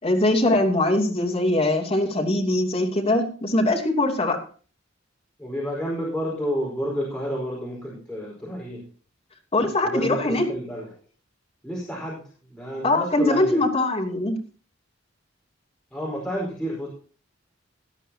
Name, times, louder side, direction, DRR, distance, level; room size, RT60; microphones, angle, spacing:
voice 1, 0.0-4.4 9.5-10.5 12.8-14.4, left 2 dB, 30° left, 0 dB, 3.0 m, -22 dB
voice 2, 5.4-8.8 9.8-10.9 11.6-12.2 12.5-13.6 15.9-16.9, equal, 5° left, -5 dB, 4.9 m, -30 dB
17.5 x 12.5 x 2.9 m, 0.39 s
head